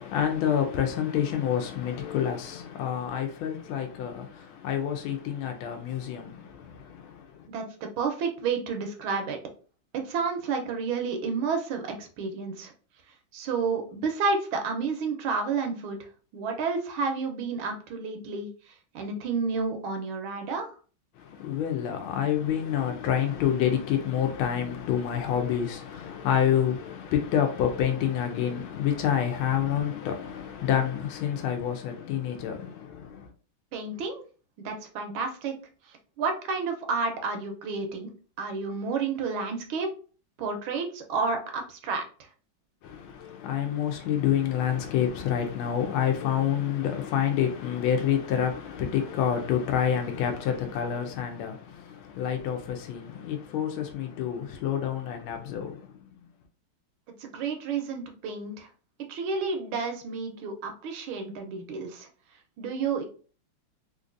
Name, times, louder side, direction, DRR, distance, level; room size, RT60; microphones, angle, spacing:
voice 1, 0.0-7.5 21.2-33.3 42.8-56.0, left 9 dB, 85° left, 1.4 m, -28 dB
voice 2, 7.5-9.4 9.9-12.7 13.3-16.0 16.3-18.5 18.9-20.8 33.7-34.2 34.6-35.5 36.2-38.1 38.4-39.9 40.4-42.1 57.2-58.7 59.0-62.1 62.6-63.0, right 4 dB, 85° right, 1.5 m, -30 dB
3.8 x 2.6 x 2.4 m
omnidirectional pair, 2.2 m